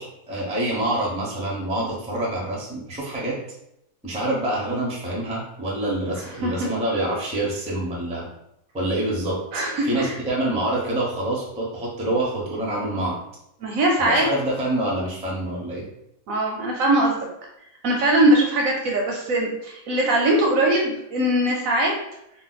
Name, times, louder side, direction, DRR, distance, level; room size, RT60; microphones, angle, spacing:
voice 1, 0.0-3.4 4.0-8.3 8.7-13.2 14.0-15.8, right 1 dB, 10° right, -5 dB, 0.4 m, -26 dB
voice 2, 9.5-10.1 13.6-14.3 16.3-17.2 17.8-21.9, right 1 dB, 70° right, -1 dB, 0.9 m, -21 dB
2.6 x 2.3 x 3.9 m, 0.81 s
omnidirectional pair, 1.8 m